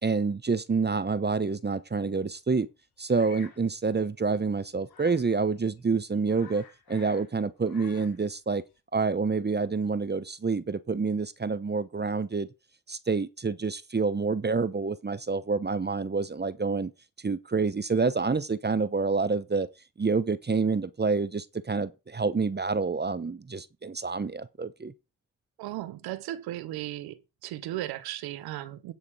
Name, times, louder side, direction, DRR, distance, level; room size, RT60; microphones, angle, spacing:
voice 1, 0.0-2.7 3.0-6.6 6.9-8.6 8.9-12.5 12.9-16.9 17.2-19.7 20.0-24.9, right 4 dB, 30° right, 1.0 m, -28 dB
Bird vocalization bird call bird song, 3.1-3.6 4.9-5.3 5.8-5.9 6.1-7.3 7.6-8.2, left 7 dB, 80° left, 3.4 m, -51 dB
voice 2, 25.6-27.2 27.4-28.9, right 14 dB, 90° right, 0.9 m, -36 dB
9.2 x 6.8 x 4.9 m
supercardioid pair, 45°, 36 cm